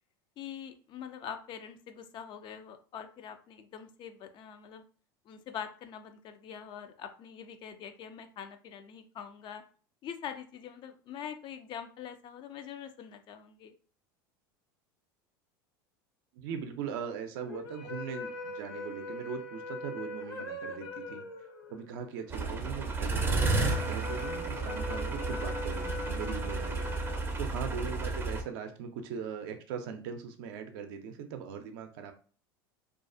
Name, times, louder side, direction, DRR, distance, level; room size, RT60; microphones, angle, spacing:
voice 1, 0.4-4.8 5.3-9.6 10.0-13.7, left 8 dB, 40° left, 8 dB, 0.4 m, -44 dB
voice 2, 16.3-21.3 21.7-27.1 27.4-32.1, right 7 dB, 65° right, 6 dB, 0.5 m, -40 dB
sound 1, 17.5-27.9, left 2 dB, 75° left, 0.8 m, -41 dB
sound 2, 22.3-28.4, right 3 dB, 20° right, 0.5 m, -32 dB
2.4 x 2.3 x 2.5 m, 0.40 s
hypercardioid pair, 90°, 12 cm